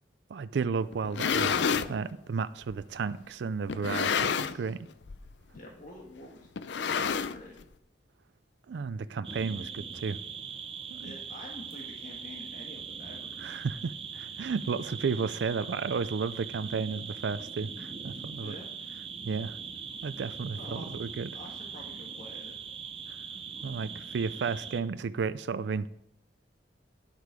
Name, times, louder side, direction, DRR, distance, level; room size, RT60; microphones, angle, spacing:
voice 1, 0.3-1.6 1.9-4.8 8.7-10.2 10.9-11.2 13.4-18.6 19.2-19.6 20.0-21.3 23.6-25.9, right 5 dB, 75° right, 0.4 m, -33 dB
sound 1, 0.9-1.9 2.7-2.8 3.7-4.7 5.0-5.3 5.6-5.7 6.6-7.6, left 6 dB, 80° left, 0.5 m, -29 dB
voice 2, 5.5-6.5 6.9-7.6 11.0-13.4 18.4-18.7 20.6-20.9 21.3-22.6, left 1 dB, 50° left, 1.5 m, -47 dB
sound 2, 9.2-24.8, right 6 dB, 30° right, 0.7 m, -41 dB
10.0 x 8.2 x 4.9 m
head